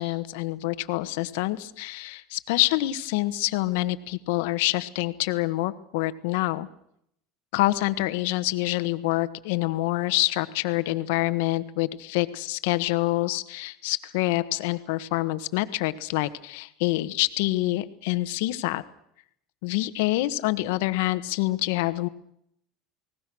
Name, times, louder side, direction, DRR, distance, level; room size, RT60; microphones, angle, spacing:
voice 1, 0.0-6.7 7.5-18.8 19.6-22.1, left 18 dB, 75° left, 12 dB, 1.4 m, -26 dB
29.5 x 19.5 x 6.3 m, 0.73 s
hypercardioid pair, 90°, 0 cm